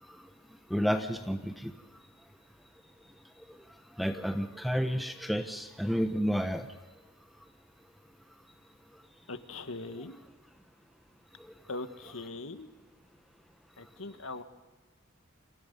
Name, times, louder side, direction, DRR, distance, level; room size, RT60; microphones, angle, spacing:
voice 1, 0.7-1.7 3.4-3.6 3.9-6.7 11.4-11.5, equal, ahead, 7 dB, 1.1 m, -31 dB
voice 2, 9.3-10.2 11.7-12.7 13.8-14.4, left 3 dB, 70° left, 9 dB, 1.7 m, -40 dB
29.5 x 27.0 x 5.5 m, 1.2 s
head